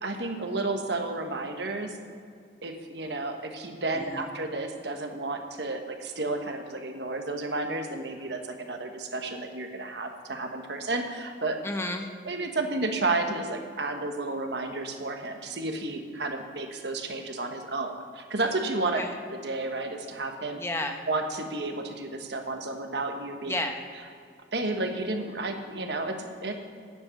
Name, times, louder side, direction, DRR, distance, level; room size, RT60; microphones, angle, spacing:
voice 1, 0.0-2.0 2.6-11.6 12.2-19.0 19.3-20.6 21.1-23.6 24.5-26.5, right 2 dB, 70° right, 4 dB, 1.3 m, -32 dB
voice 2, 3.9-4.3 11.6-12.1 18.9-19.1 20.6-21.0 23.5-23.8, left 1 dB, 15° left, 5 dB, 0.9 m, -31 dB
9.4 x 7.9 x 9.3 m, 2.2 s
head